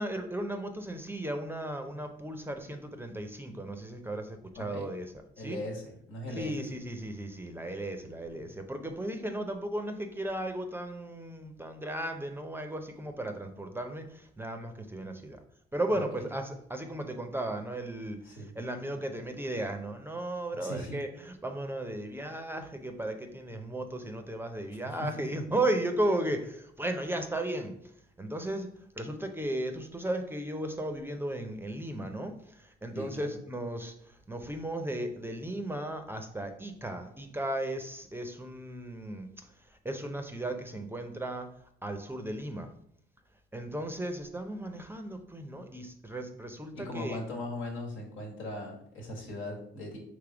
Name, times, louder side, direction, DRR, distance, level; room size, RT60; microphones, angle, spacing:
voice 1, 0.0-5.1 5.4-5.6 6.4-15.4 15.7-18.2 18.5-27.7 28.2-28.7 29.0-33.9 34.3-39.5 39.8-41.5 41.8-42.7 43.5-47.2, right 1 dB, 10° right, 6 dB, 0.5 m, -35 dB
voice 2, 4.5-4.9 5.4-6.8 8.4-8.5 15.9-16.3 18.2-18.5 20.5-21.0 24.8-25.3 32.9-33.3 46.7-50.0, left 1 dB, 80° left, 0 dB, 1.4 m, -39 dB
3.4 x 3.2 x 4.8 m, 0.73 s
cardioid pair, 90°, 20 cm